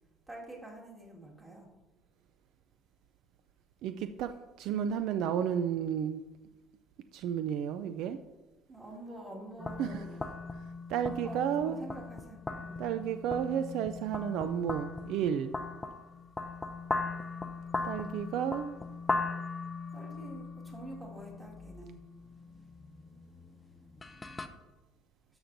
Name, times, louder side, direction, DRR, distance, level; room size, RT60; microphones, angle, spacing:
voice 1, 0.3-1.7 8.7-10.2 11.2-12.8 19.9-22.0, right 1 dB, 15° right, -3 dB, 1.9 m, -46 dB
voice 2, 3.8-4.3 4.6-6.2 7.1-8.2 9.8-10.0 10.9-11.8 12.8-15.5 17.8-18.8, right 9 dB, 65° right, 10 dB, 0.3 m, -32 dB
sound 1, 9.6-24.5, left 3 dB, 15° left, 0.5 m, -39 dB
13.5 x 6.0 x 2.6 m, 1.1 s
cardioid pair, 145°, 0 cm